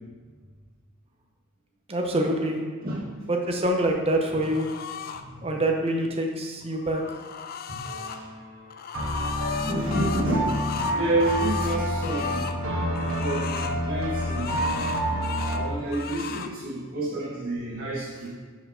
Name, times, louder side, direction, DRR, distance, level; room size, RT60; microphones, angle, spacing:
voice 1, 1.9-2.6 3.3-4.7 5.4-7.0, right 1 dB, 30° right, 2 dB, 0.8 m, -25 dB
voice 2, 2.8-3.1 5.1-5.5 7.7-7.8 8.1-8.2 9.6-12.5 13.1-14.6 15.4-18.3, right 1 dB, 50° right, -11 dB, 1.6 m, -29 dB
sound 1, 4.4-5.2 6.6-8.2 8.7-12.6 12.9-13.8 14.2-15.6 15.9-16.5, left 7 dB, 45° left, 0.3 m, -36 dB
sound 2, 7.8-8.4 8.9-15.7, equal, 75° right, 1.3 m, -28 dB
5.1 x 4.8 x 6.0 m, 1.5 s
head